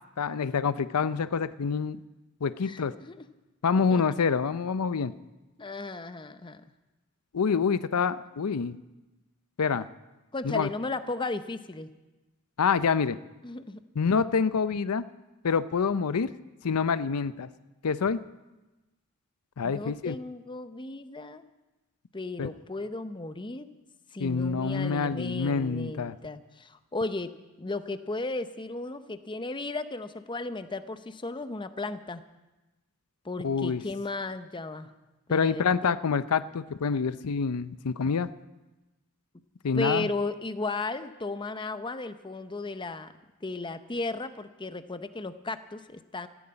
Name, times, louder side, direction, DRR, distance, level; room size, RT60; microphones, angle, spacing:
voice 1, 0.2-2.0 2.4-2.9 3.6-5.1 7.3-8.8 9.6-9.9 10.4-10.7 12.6-13.2 14.0-15.0 15.4-16.3 16.6-17.5 17.8-18.2 19.6-20.1 22.4-22.5 24.2-26.2 33.4-33.8 35.3-38.3 39.6-40.1, left 5 dB, 85° left, 14 dB, 0.5 m, -26 dB
voice 2, 2.6-3.2 3.9-4.0 5.6-6.6 10.3-11.9 13.4-13.8 19.6-21.4 22.1-23.7 24.1-27.3 27.6-32.2 33.2-34.9 35.3-36.0 39.7-43.1 43.4-46.3, left 2 dB, 20° left, 11 dB, 0.7 m, -35 dB
15.0 x 11.0 x 8.7 m, 1.1 s
head